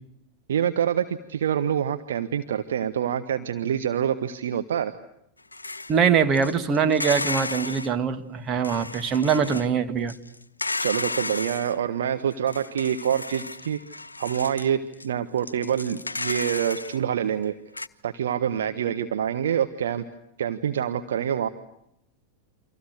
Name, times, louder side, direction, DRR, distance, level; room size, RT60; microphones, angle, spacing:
voice 1, 0.5-4.9 10.8-13.8 14.2-17.5 18.0-20.0 20.4-21.5, right 9 dB, 60° right, 1.3 m, -26 dB
sound 1, 5.5-6.0 6.4-7.9 8.6-9.7 10.1-11.8 12.3-14.7 14.9-15.1 15.4-17.0 17.4-17.5 17.8-17.9, left 2 dB, 80° left, 1.0 m, -33 dB
voice 2, 5.9-10.1, right 6 dB, 30° right, 2.2 m, -23 dB
29.0 x 26.0 x 6.5 m
figure-of-eight pair, 90°, 0 cm